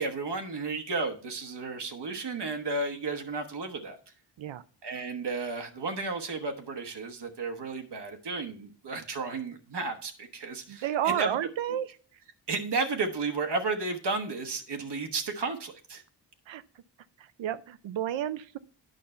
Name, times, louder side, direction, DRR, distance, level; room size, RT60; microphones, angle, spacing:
voice 1, 0.0-4.0 4.8-11.4 12.5-16.0, right 3 dB, 65° right, 4 dB, 1.1 m, -33 dB
voice 2, 10.7-11.9 16.5-16.6 17.2-18.6, right 10 dB, 85° right, 14 dB, 0.6 m, -31 dB
9.2 x 5.3 x 4.3 m, 0.41 s
cardioid pair, 70°, 44 cm